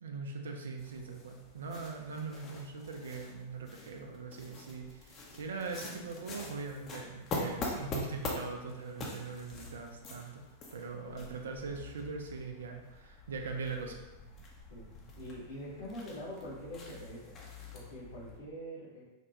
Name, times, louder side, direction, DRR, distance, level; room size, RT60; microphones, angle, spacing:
voice 1, 0.0-10.4 10.7-14.0, right 4 dB, 65° right, 3 dB, 0.4 m, -41 dB
sound 1, 0.8-18.4, left 2 dB, 30° left, 0.6 m, -44 dB
voice 2, 15.2-17.3 17.7-19.0, equal, 75° left, -7 dB, 1.0 m, -44 dB
3.2 x 2.2 x 2.8 m, 1.1 s
figure-of-eight pair, 90°, 0 cm